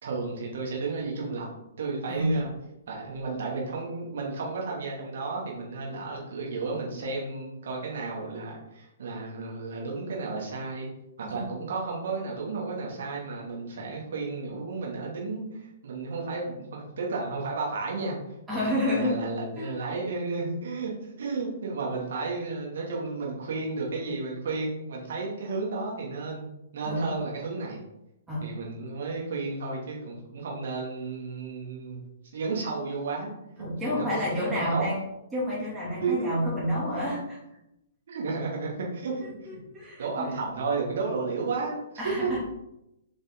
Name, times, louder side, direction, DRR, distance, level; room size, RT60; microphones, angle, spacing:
voice 1, 0.0-1.5 1.8-2.5 2.9-10.9 11.2-18.2 18.5-26.5 26.7-27.8 28.4-32.0 32.3-33.3 33.6-34.9 36.0-36.4 38.1-39.2 40.0-41.8 42.2-42.3, right 3 dB, 55° right, -2 dB, 2.2 m, -33 dB
voice 2, 18.5-19.2 19.5-19.7 26.8-27.1 28.3-28.5 33.6-35.0 35.3-37.4 39.5-40.3 42.0-42.4, equal, 10° right, -7 dB, 2.9 m, -29 dB
7.3 x 5.3 x 3.9 m, 0.87 s
figure-of-eight pair, 115°, 0 cm